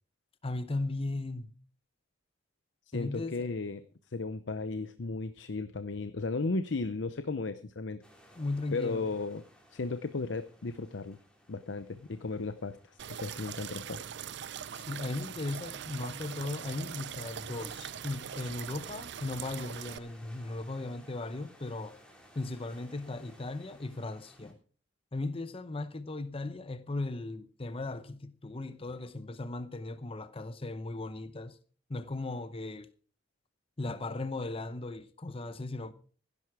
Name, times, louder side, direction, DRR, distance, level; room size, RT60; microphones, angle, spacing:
voice 1, 0.4-1.5 2.9-3.5 8.4-9.0 14.7-22.0 22.4-24.6 25.1-31.6 31.9-32.9 33.8-35.9, left 2 dB, 30° left, 0.7 m, -37 dB
voice 2, 2.9-8.0 8.7-9.4 9.7-11.2 11.5-14.0, left 3 dB, 70° left, 0.7 m, -35 dB
sound 1, 8.0-24.5, equal, 5° left, 3.4 m, -60 dB
sound 2, 13.0-20.0, right 9 dB, 65° right, 0.5 m, -42 dB
16.0 x 11.0 x 4.8 m
head